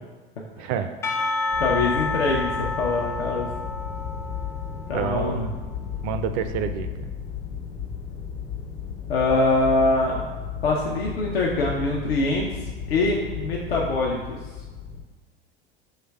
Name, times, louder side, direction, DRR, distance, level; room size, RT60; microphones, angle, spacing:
voice 1, 0.6-0.9 4.9-5.6 6.0-7.1, right 7 dB, 50° right, 9 dB, 0.4 m, -28 dB
Percussion / Church bell, 1.0-5.4, left 3 dB, 10° left, 0.3 m, -30 dB
sound 1, 1.5-15.0, left 7 dB, 70° left, 0.9 m, -34 dB
voice 2, 1.6-3.5 4.9-5.4 9.1-10.3 10.6-12.5 12.9-14.4, left 2 dB, 90° left, -3 dB, 0.6 m, -23 dB
5.6 x 3.1 x 2.3 m, 1.3 s
hypercardioid pair, 85°, 29 cm